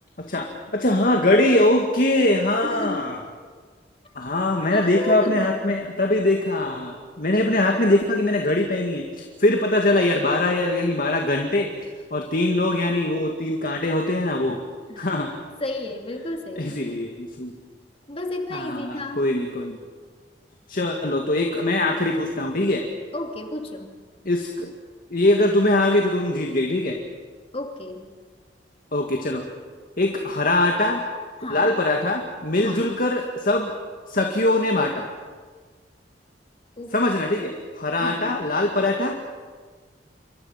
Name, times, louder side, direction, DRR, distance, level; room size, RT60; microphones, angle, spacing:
voice 1, 0.7-3.2 4.2-11.7 12.1-14.6 15.0-15.3 16.6-17.5 18.5-19.8 20.7-22.9 24.2-24.7 25.1-27.0 28.9-29.4 30.0-31.0 31.5-33.8 34.1-35.1 36.9-39.1, left 1 dB, 55° left, 2 dB, 2.0 m, -22 dB
voice 2, 2.6-3.1 4.6-5.5 14.9-15.1 15.6-16.8 18.1-19.2 23.1-23.9 27.5-28.1 31.4-31.7 32.6-32.9 36.8-37.0 38.0-38.4, left 1 dB, 35° left, 3 dB, 2.8 m, -32 dB
28.5 x 24.5 x 5.9 m, 1.5 s
head